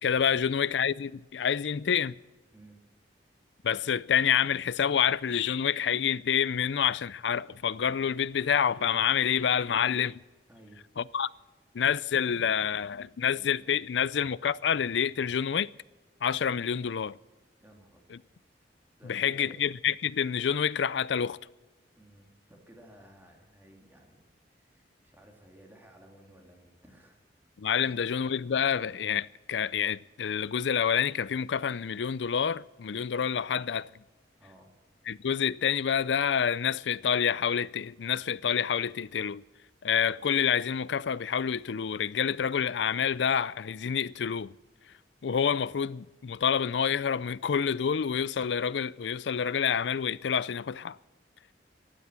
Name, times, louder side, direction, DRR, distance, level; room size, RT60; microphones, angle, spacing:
voice 1, 0.0-2.2 3.6-10.2 11.0-11.3 11.7-15.7 16.2-17.2 18.1-18.2 19.1-21.4 27.6-33.9 35.1-39.4 39.8-44.5 45.2-51.0, left 7 dB, 90° left, 0.5 m, -28 dB
voice 2, 2.5-2.8 10.5-10.9 17.6-18.2 19.0-19.8 22.0-24.2 24.5-27.2 27.8-28.1 34.4-34.7, right 1 dB, 10° right, 3.0 m, -55 dB
14.0 x 11.5 x 7.5 m
head